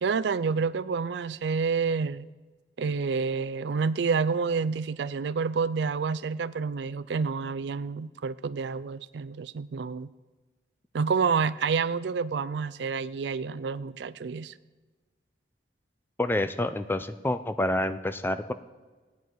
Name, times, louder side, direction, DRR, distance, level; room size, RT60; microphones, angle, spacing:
voice 1, 0.0-2.3 2.8-10.1 10.9-14.5, right 5 dB, 70° right, 17 dB, 0.4 m, -28 dB
voice 2, 16.2-18.5, left 1 dB, 10° left, 11 dB, 0.4 m, -28 dB
17.0 x 9.5 x 4.7 m, 1.3 s
head